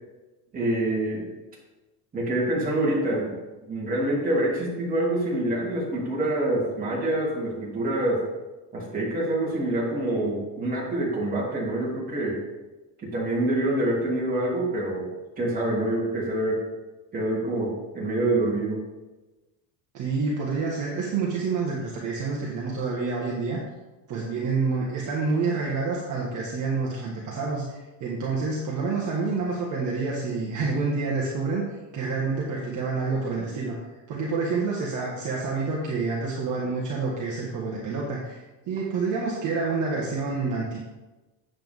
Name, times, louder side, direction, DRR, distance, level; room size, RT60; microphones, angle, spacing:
voice 1, 0.5-1.3 2.1-3.4 3.7-8.2 8.7-12.4 13.0-15.1 15.4-16.6 17.1-18.8, right 1 dB, 20° right, -6 dB, 3.0 m, -26 dB
voice 2, 19.9-23.6 24.1-31.6 31.9-33.8 34.1-40.8, right 4 dB, 45° right, -3 dB, 1.6 m, -28 dB
8.7 x 7.9 x 3.7 m, 1.1 s
cardioid pair, 165°, 44 cm